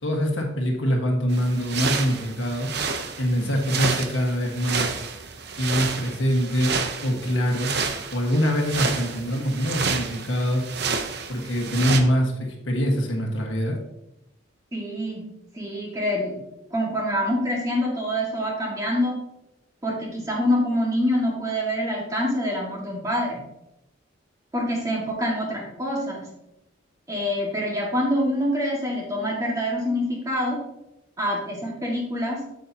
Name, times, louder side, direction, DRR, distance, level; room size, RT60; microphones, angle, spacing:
voice 1, 0.0-2.7 3.2-4.9 5.6-6.7 7.0-7.7 8.1-10.6 11.3-13.8, equal, 70° left, 1 dB, 1.6 m, -24 dB
sound 1, 1.3-12.0, right 5 dB, 55° right, 0.8 m, -30 dB
voice 2, 14.7-15.2 15.5-16.4 16.7-19.2 19.8-23.4 24.5-26.2 27.1-30.6 31.2-32.4, equal, 15° right, -2 dB, 1.8 m, -25 dB
8.2 x 7.5 x 2.8 m, 0.88 s
head